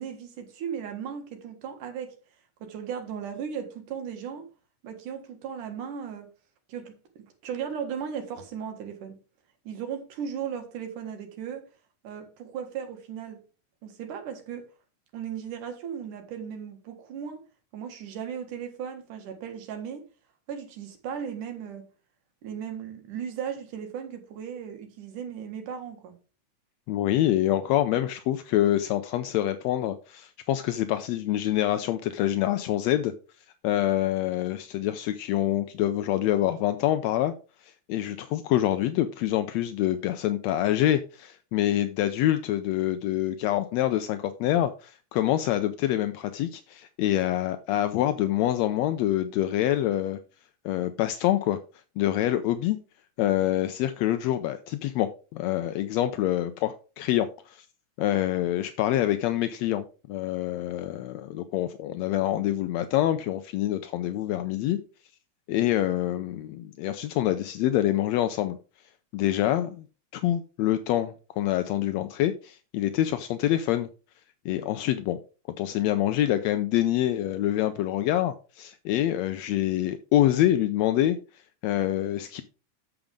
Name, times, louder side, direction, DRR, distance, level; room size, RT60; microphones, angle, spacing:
voice 1, 0.0-2.1 2.6-4.5 4.8-6.3 6.7-9.2 9.6-11.7 12.0-13.4 13.8-14.7 15.1-17.4 17.7-20.1 20.5-21.9 22.4-26.2, right 8 dB, 80° right, 3.2 m, -36 dB
voice 2, 26.9-33.1 33.6-37.3 37.6-50.2 50.7-51.6 52.0-52.8 53.2-57.7 58.0-64.8 65.5-68.6 69.1-69.9 70.1-73.9 74.5-75.2 75.6-82.4, left 13 dB, 80° left, 1.6 m, -26 dB
8.9 x 7.0 x 3.7 m
omnidirectional pair, 3.5 m